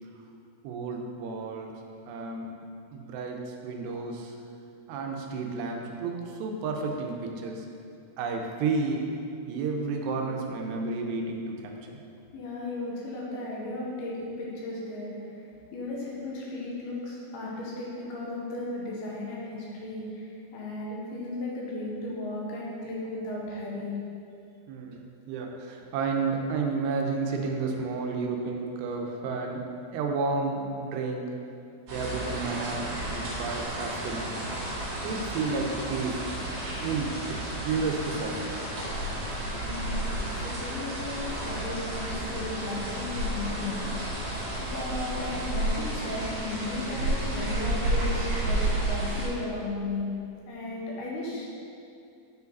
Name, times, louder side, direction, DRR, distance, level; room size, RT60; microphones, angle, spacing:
voice 1, 0.6-1.8 2.1-2.5 2.9-4.4 4.9-7.7 8.2-9.1 9.5-12.0 24.7-31.3 31.9-34.4 35.0-36.2 36.8-38.4, right 4 dB, 85° right, 2 dB, 2.8 m, -31 dB
voice 2, 12.3-24.0 39.6-43.9 44.6-50.1 50.5-51.6, left 2 dB, 75° left, -4 dB, 2.7 m, -35 dB
sound 1, 31.9-49.3, right 1 dB, 55° right, 2.4 m, -31 dB
7.3 x 4.8 x 4.0 m, 2.6 s
omnidirectional pair, 4.8 m